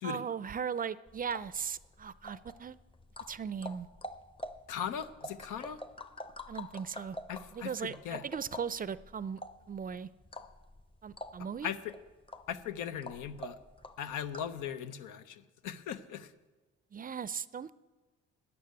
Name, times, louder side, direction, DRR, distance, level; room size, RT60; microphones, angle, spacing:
voice 1, 0.0-2.8 3.3-3.9 6.5-7.2 7.5-9.4 9.7-10.1 11.0-11.7 16.9-17.7, right 7 dB, 30° right, 17 dB, 0.4 m, -38 dB
sound 1, 1.1-14.6, left 1 dB, 20° left, 0.7 m, -47 dB
voice 2, 4.7-5.8 7.3-8.2 11.6-11.9 12.5-13.6 14.0-16.3, left 8 dB, 90° left, 11 dB, 0.8 m, -39 dB
13.0 x 7.1 x 9.6 m, 1.3 s
cardioid pair, 90°, 30 cm